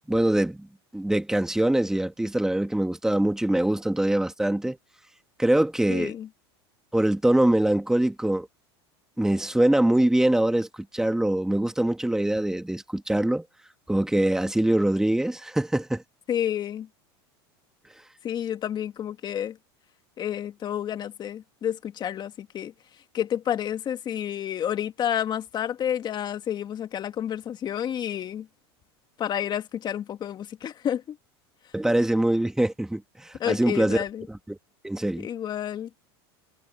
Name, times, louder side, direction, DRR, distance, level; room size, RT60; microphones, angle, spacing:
voice 1, 0.1-0.7 0.9-4.8 5.4-6.1 6.9-8.5 9.2-10.7 10.9-13.4 13.9-16.0 31.7-34.6 34.8-35.3, right 1 dB, 5° right, 2.1 m, -23 dB
voice 2, 5.9-6.3 16.3-16.9 18.2-19.6 20.2-22.7 23.1-28.5 29.2-31.2 33.4-34.3 35.2-36.0, left 10 dB, 35° left, 1.9 m, -30 dB
supercardioid pair, 120°, 13 cm